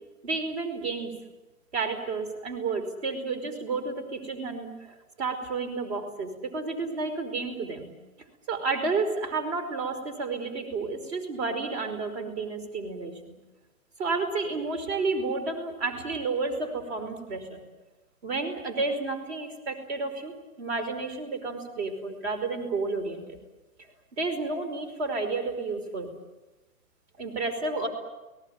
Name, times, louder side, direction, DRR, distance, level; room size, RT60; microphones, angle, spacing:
voice 1, 0.2-1.1 1.7-7.9 8.5-13.4 14.0-17.6 18.2-23.4 24.1-26.1 27.2-27.9, right 3 dB, 45° right, 9 dB, 5.1 m, -31 dB
29.5 x 19.0 x 8.9 m, 1.1 s
hypercardioid pair, 165°, 44 cm